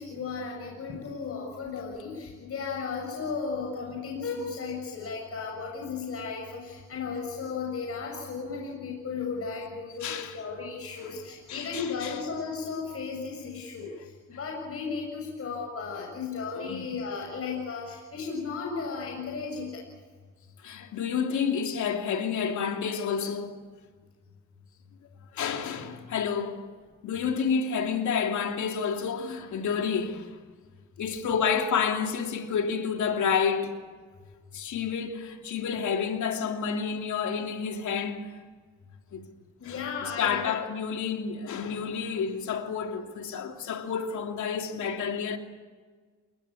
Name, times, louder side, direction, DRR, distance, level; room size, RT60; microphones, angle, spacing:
voice 1, 0.0-13.9 14.4-19.7 31.0-31.2 39.6-40.3, left 5 dB, 50° left, 6.8 m, -35 dB
voice 2, 10.0-10.4 11.0-11.1 11.5-12.2 16.6-16.8 20.6-23.6 25.3-26.7 27.0-30.4 31.0-33.8 34.5-38.3 39.1-39.2 39.6-45.4, left 6 dB, 70° left, 3.2 m, -29 dB
29.5 x 19.5 x 8.6 m
cardioid pair, 90°, 30 cm